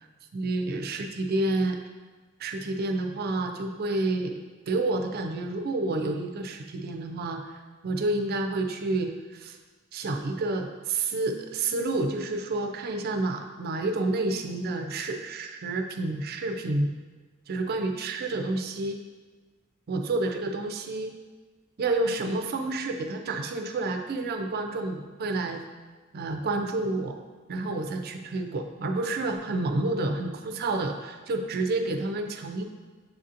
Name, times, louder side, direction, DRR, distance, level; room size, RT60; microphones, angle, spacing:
voice 1, 0.3-1.8 2.4-7.5 7.8-9.6 9.9-16.9 17.5-19.0 19.9-21.1 21.8-25.6 26.1-27.2 27.5-32.6, right 2 dB, 50° right, 5 dB, 0.4 m, -29 dB
6.9 x 2.7 x 2.5 m, 1.4 s
head